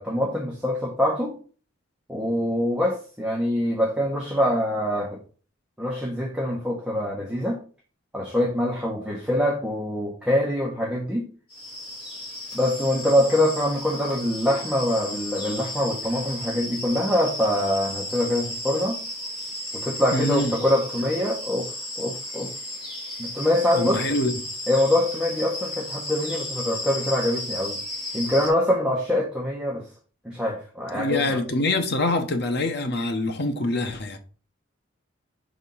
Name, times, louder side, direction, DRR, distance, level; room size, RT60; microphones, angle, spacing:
voice 1, 0.0-1.3 2.1-5.2 5.8-7.6 8.1-11.3 12.5-19.0 19.7-22.5 23.2-24.0 24.7-27.8 28.1-29.8 30.2-31.4, left 1 dB, 5° right, 1.1 m, -24 dB
sound 1, 11.5-28.5, left 1 dB, 30° left, 2.3 m, -34 dB
voice 2, 20.1-20.5 23.7-24.4 30.9-34.2, left 2 dB, 55° left, 1.0 m, -25 dB
5.2 x 3.6 x 5.5 m
head